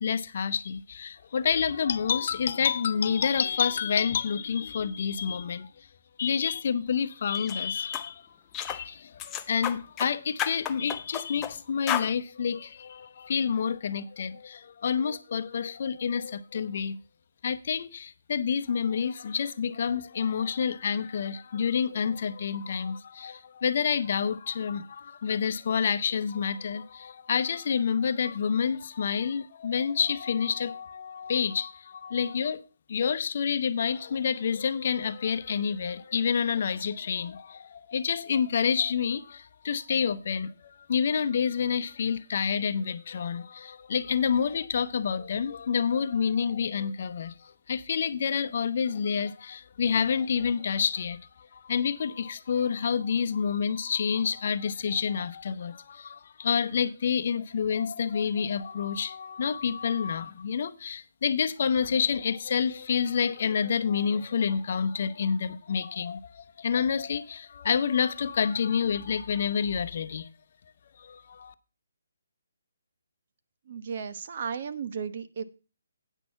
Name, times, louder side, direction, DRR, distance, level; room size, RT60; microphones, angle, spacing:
voice 1, 0.0-5.9 6.2-8.2 8.6-17.0 17.4-32.6 32.9-70.3 71.0-71.5, left 7 dB, 50° left, 0.8 m, -28 dB
sound 1, 7.3-7.6 7.9-8.1 8.5-8.8 9.2-10.1 10.4-11.5 11.9-12.1, left 10 dB, 15° left, 0.6 m, -32 dB
voice 2, 73.6-75.4, right 6 dB, 50° right, 0.9 m, -34 dB
9.1 x 6.1 x 5.7 m
hypercardioid pair, 150°, 0 cm